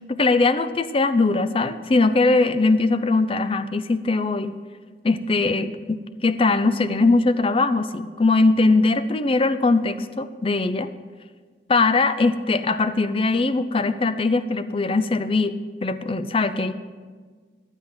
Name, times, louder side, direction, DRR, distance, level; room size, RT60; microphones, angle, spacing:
voice 1, 0.1-4.5 5.0-10.9 11.7-15.5 15.8-16.7, left 3 dB, 30° left, 12 dB, 0.5 m, -21 dB
12.5 x 8.0 x 5.7 m, 1.5 s
head